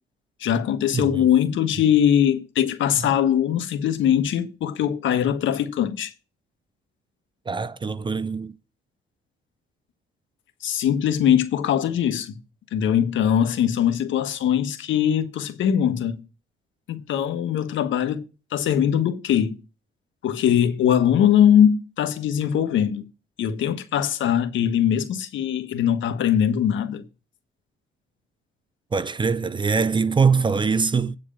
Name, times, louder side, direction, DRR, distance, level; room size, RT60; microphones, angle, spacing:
voice 1, 0.4-6.1 10.6-12.4 12.7-16.2 16.9-18.2 18.5-19.6 20.2-23.0 23.4-27.0, left 9 dB, 75° left, 1.4 m, -21 dB
voice 2, 0.9-1.3 7.5-8.5 28.9-31.2, right 5 dB, 25° right, 0.5 m, -23 dB
8.7 x 4.7 x 7.4 m
cardioid pair, 90°, 20 cm